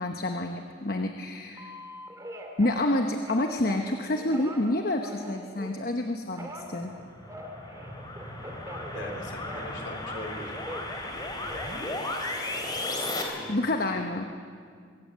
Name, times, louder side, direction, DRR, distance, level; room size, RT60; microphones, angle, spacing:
voice 1, 0.0-1.7 2.6-6.9 13.5-14.2, left 1 dB, 50° left, 4 dB, 0.9 m, -28 dB
Telephone, 1.6-5.9 6.4-9.8 10.1-12.6 13.1-13.6, equal, 20° right, 2.0 m, -43 dB
sound 1, 6.7-13.2, left 2 dB, 20° left, 2.8 m, -35 dB
voice 2, 8.9-10.5 13.3-13.7 13.9-14.0, left 1 dB, 65° left, 3 dB, 3.2 m, -41 dB
23.5 x 16.0 x 7.3 m, 2.1 s
head